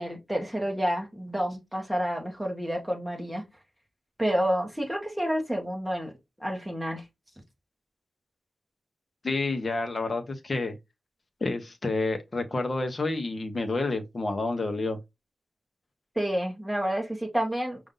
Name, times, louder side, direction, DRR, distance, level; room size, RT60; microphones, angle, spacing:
voice 1, 0.0-3.4 4.2-6.1 6.4-7.0 16.1-17.8, equal, 5° right, 1.3 m, -29 dB
voice 2, 9.2-10.7 11.4-15.0, left 3 dB, 30° left, 1.0 m, -29 dB
5.2 x 2.5 x 3.8 m
wide cardioid pair, 140°, 0 cm